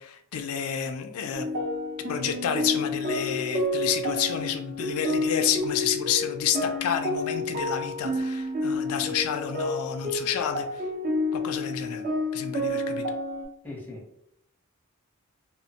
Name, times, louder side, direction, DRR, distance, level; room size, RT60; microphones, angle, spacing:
voice 1, 0.0-1.5 2.1-10.8 11.3-12.0 12.3-13.0, left 8 dB, 75° left, 6 dB, 0.4 m, -30 dB
sound 1, 1.3-13.4, left 2 dB, 40° right, 0.7 m, -29 dB
voice 2, 13.6-14.3, left 2 dB, 10° left, -3 dB, 0.7 m, -41 dB
2.9 x 2.1 x 2.8 m, 0.74 s
head